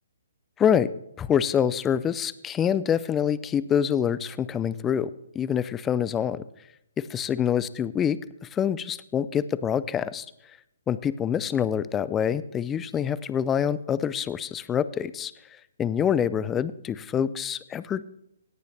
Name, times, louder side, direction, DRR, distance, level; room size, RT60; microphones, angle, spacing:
voice 1, 1.2-6.4 7.1-10.3 10.9-15.3 15.8-18.0, left 8 dB, 15° left, 16 dB, 0.4 m, -26 dB
17.5 x 6.7 x 3.3 m, 0.80 s
hypercardioid pair, 150°, 0 cm